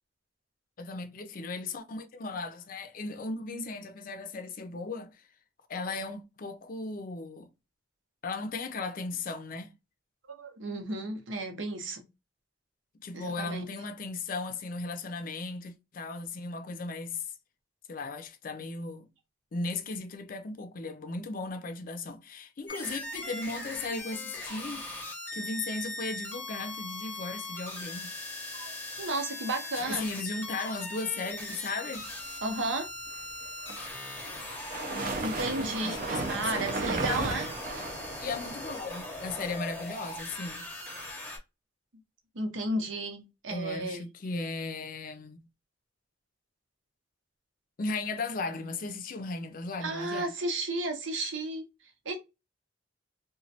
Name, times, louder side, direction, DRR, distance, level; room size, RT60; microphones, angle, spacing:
voice 1, 0.8-5.1 5.7-7.5 8.2-9.7 13.0-17.3 17.9-19.1 19.5-24.9 25.3-28.1 29.7-32.1 35.8-37.4 38.2-40.7 43.5-45.4 47.8-50.3, left 3 dB, 45° left, 0.5 m, -36 dB
voice 2, 10.3-12.0 13.1-13.7 28.6-30.1 32.4-32.9 35.2-36.0 36.3-37.5 42.3-44.0 49.8-51.6 52.0-52.2, right 2 dB, 85° right, 0.8 m, -33 dB
sound 1, 22.7-41.4, left 1 dB, 10° left, 0.7 m, -40 dB
sound 2, 33.4-38.5, right 3 dB, 45° right, 0.5 m, -34 dB
3.0 x 2.2 x 2.7 m
head